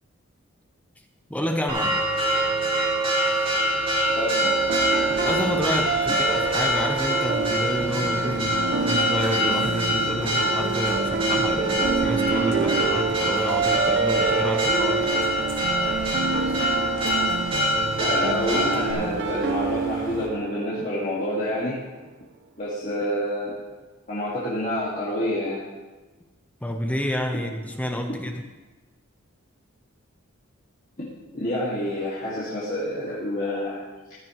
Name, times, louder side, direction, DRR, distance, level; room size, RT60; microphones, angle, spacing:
voice 1, 1.3-2.1 5.1-15.1 26.6-28.4, equal, 5° left, 4 dB, 0.8 m, -29 dB
Church bell, 1.7-18.9, right 1 dB, 25° right, 2.6 m, -25 dB
voice 2, 4.1-4.5 18.0-21.8 22.6-23.6 24.1-25.6 31.0-33.8, left 1 dB, 40° left, -8 dB, 2.2 m, -28 dB
sound 1, 4.4-21.3, right 4 dB, 55° right, 0.5 m, -28 dB
sound 2, 4.6-20.3, left 1 dB, 75° left, 2.9 m, -40 dB
15.0 x 13.5 x 3.2 m, 1.2 s
head